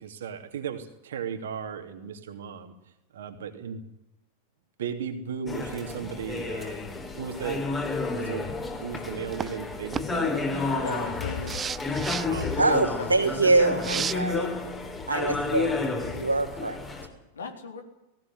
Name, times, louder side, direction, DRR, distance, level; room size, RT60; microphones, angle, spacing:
voice 1, 0.0-2.7 3.1-3.8 4.8-6.8 7.2-7.6 8.1-8.5 8.8-10.9 12.3-12.7, right 7 dB, 60° right, 6 dB, 3.0 m, -36 dB
sound 1, 5.5-17.1, left 3 dB, 15° left, 4.0 m, -31 dB
sound 2, 9.3-9.6 9.9-10.1 11.5-12.3 13.8-14.1, right 7 dB, 20° right, 0.7 m, -31 dB
voice 2, 10.8-11.7 12.5-13.3 17.3-17.8, left 4 dB, 70° left, 5 dB, 4.0 m, -37 dB
voice 3, 12.6-14.5 15.1-15.7 16.1-16.8, right 3 dB, 80° right, 2 dB, 3.8 m, -24 dB
19.0 x 17.5 x 9.6 m, 0.87 s
figure-of-eight pair, 90°, 0 cm